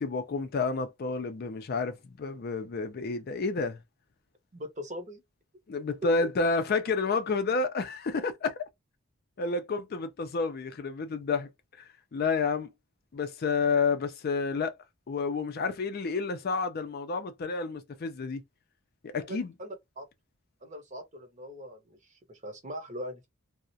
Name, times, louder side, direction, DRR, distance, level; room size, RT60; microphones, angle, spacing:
voice 1, 0.0-3.8 5.7-8.5 9.4-11.5 11.8-12.7 13.1-14.7 15.1-18.4 19.0-19.5, left 4 dB, 50° left, 0.4 m, -30 dB
voice 2, 4.5-5.2 19.3-20.0 20.6-23.3, equal, 35° right, 0.7 m, -41 dB
2.4 x 2.1 x 2.6 m
head